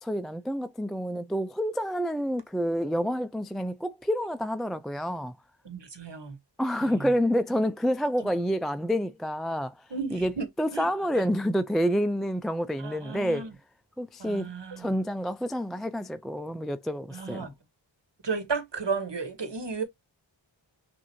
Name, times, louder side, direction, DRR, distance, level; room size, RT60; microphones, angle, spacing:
voice 1, 0.0-5.3 6.6-9.7 10.1-10.3 10.6-13.4 14.0-14.5 14.8-17.5, equal, ahead, 0.3 m, -28 dB
voice 2, 5.6-6.4 6.8-7.1 9.9-10.5 10.7-10.9 12.8-13.5 14.2-14.9 17.1-17.5 18.2-19.8, right 4 dB, 60° right, 1.4 m, -33 dB
6.0 x 2.7 x 2.7 m
wide cardioid pair, 45°, 48 cm